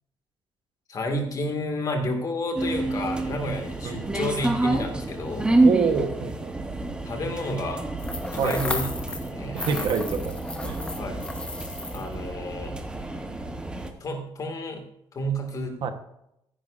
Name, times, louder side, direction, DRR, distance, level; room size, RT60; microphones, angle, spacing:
voice 1, 0.9-5.5 7.1-7.9 8.3-9.6 11.0-11.2 11.9-12.8 14.0-14.8 15.1-15.9, left 1 dB, 40° left, 4 dB, 2.1 m, -31 dB
sound 1, 2.6-13.9, right 2 dB, 10° right, 1.1 m, -28 dB
voice 2, 3.8-4.2 5.6-6.5 8.4-8.6 9.5-10.3 10.6-10.8 15.8-15.9, right 6 dB, 65° right, 7 dB, 1.2 m, -26 dB
sound 2, 8.0-9.3 9.6-12.1, left 2 dB, 10° left, 1.0 m, -34 dB
15.0 x 10.5 x 2.6 m, 0.79 s
cardioid pair, 175°, 9 cm